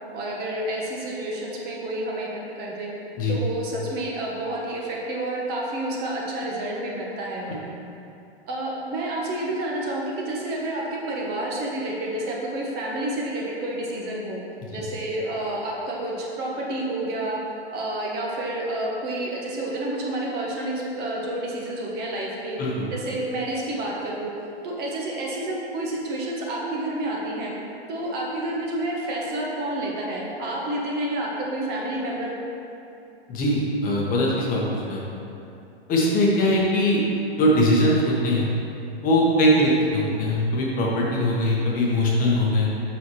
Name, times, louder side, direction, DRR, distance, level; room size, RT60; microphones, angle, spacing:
voice 1, 0.1-2.9 3.3-7.7 8.4-14.4 14.7-17.4 17.7-22.6 22.9-24.3 24.6-27.5 27.9-32.3 39.6-39.8, right 1 dB, 30° right, -3 dB, 1.1 m, -29 dB
voice 2, 33.3-35.0 35.9-37.0 37.4-38.5 39.0-42.7, left 1 dB, 25° left, -3 dB, 1.1 m, -21 dB
7.3 x 5.7 x 3.1 m, 2.7 s
hypercardioid pair, 130°, 33 cm